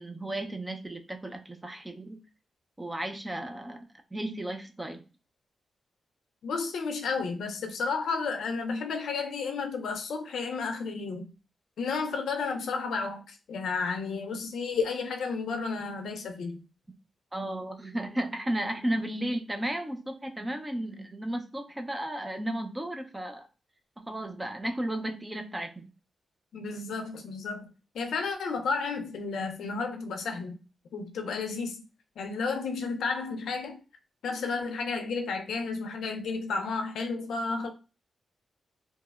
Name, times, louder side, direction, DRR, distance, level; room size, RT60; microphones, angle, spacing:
voice 1, 0.0-2.2 2.8-3.8 4.1-5.0 17.3-23.5 24.0-25.9, right 1 dB, 15° right, 0.4 m, -34 dB
voice 2, 6.4-11.3 11.8-16.6 26.5-27.7 27.9-30.6 30.9-31.8 32.2-33.8 34.2-37.7, left 4 dB, 85° left, 0.4 m, -32 dB
2.8 x 2.0 x 2.2 m
cardioid pair, 90°, 0 cm